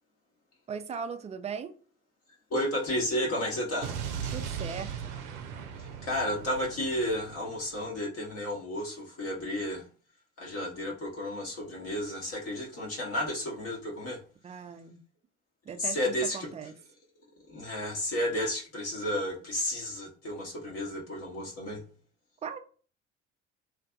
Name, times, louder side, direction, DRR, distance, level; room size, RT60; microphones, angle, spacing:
voice 1, 0.7-1.7 4.3-5.2 14.4-15.0 15.7-16.7 22.4-22.6, right 6 dB, 20° right, 0.3 m, -38 dB
voice 2, 2.5-4.0 5.8-9.9 10.4-14.2 15.8-16.5 17.5-21.8, left 1 dB, 40° left, 0.8 m, -32 dB
Explosion, 3.8-7.9, right 7 dB, 70° right, 0.6 m, -38 dB
2.5 x 2.4 x 2.2 m
figure-of-eight pair, 55°, 37 cm